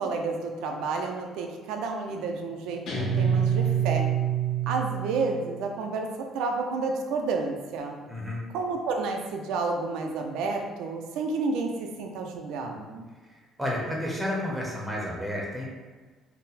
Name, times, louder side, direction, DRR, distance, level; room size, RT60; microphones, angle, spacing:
voice 1, 0.0-4.1 4.7-6.1 6.3-8.0 8.5-13.1, right 3 dB, 90° right, 2 dB, 0.4 m, -30 dB
Guitar, 2.9-5.5, right 8 dB, 45° left, 0.8 m, -26 dB
voice 2, 8.1-8.5 13.3-15.7, left 1 dB, 5° right, -3 dB, 0.7 m, -31 dB
4.1 x 2.0 x 4.0 m, 1.3 s
cardioid pair, 170°, 0 cm